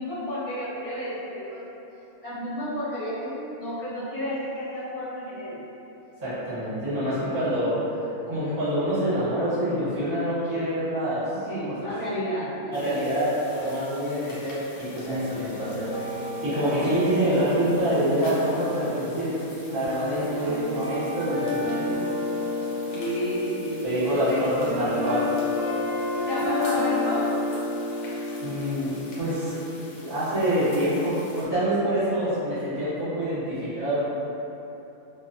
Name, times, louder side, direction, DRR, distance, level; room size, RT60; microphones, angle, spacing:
voice 1, 0.0-1.6 2.2-5.6 11.5-13.3 22.9-24.4 26.3-27.3, equal, 40° left, -13 dB, 0.5 m, -31 dB
voice 2, 6.2-7.8 8.3-11.2 12.7-19.3 19.6-21.9 23.8-25.2 28.4-29.5 30.0-34.0, equal, 40° right, -13 dB, 0.9 m, -26 dB
sound 1, 12.7-31.5, left 2 dB, 70° left, 0.9 m, -47 dB
sound 2, 15.1-29.5, left 2 dB, 65° right, 1.0 m, -30 dB
2.4 x 2.3 x 2.5 m, 3.0 s
omnidirectional pair, 1.6 m